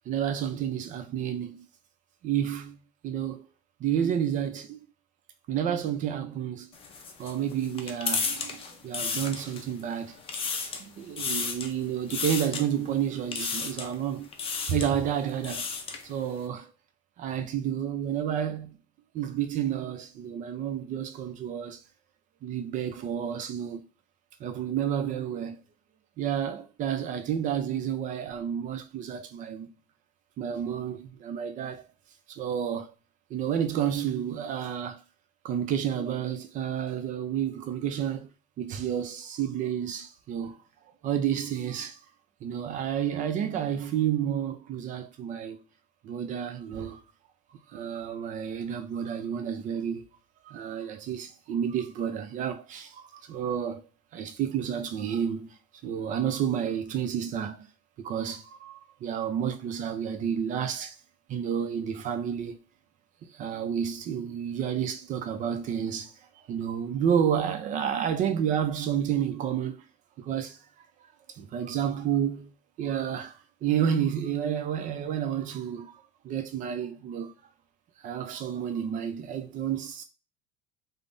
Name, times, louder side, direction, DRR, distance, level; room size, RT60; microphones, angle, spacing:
voice 1, 0.1-1.7 2.2-3.5 3.8-4.8 5.5-6.7 7.2-10.2 10.8-14.3 14.7-15.7 16.0-16.7 17.2-18.8 19.1-21.8 22.4-23.9 24.4-25.6 26.2-29.7 30.4-31.9 32.3-32.9 33.3-35.0 35.4-38.3 38.6-40.6 41.0-42.0 42.4-45.6 46.0-47.0 47.7-50.1 50.5-53.9 54.1-57.7 58.0-61.0 61.3-62.6 63.2-66.1 66.5-69.8 70.2-70.6 71.3-72.5 72.8-77.3 78.0-80.0, right 9 dB, 40° right, 0.5 m, -30 dB
sound 1, 6.7-9.8 10.1-10.9 11.2-11.7 12.1-12.6 13.3-13.9 14.3-14.9 15.3-16.0, left 5 dB, 30° left, 0.5 m, -32 dB
3.3 x 2.0 x 2.5 m
cardioid pair, 125°, 19 cm